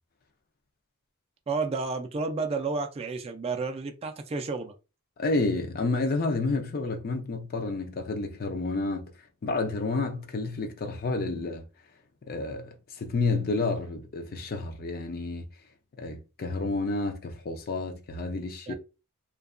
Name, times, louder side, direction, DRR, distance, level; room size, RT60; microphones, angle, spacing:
voice 1, 1.5-4.7 18.7-18.8, right 4 dB, 25° right, 0.3 m, -31 dB
voice 2, 5.2-9.1 9.4-11.6 12.3-12.7 13.0-15.5 16.0-18.7, left 3 dB, 40° left, 0.4 m, -30 dB
2.7 x 2.2 x 2.4 m
head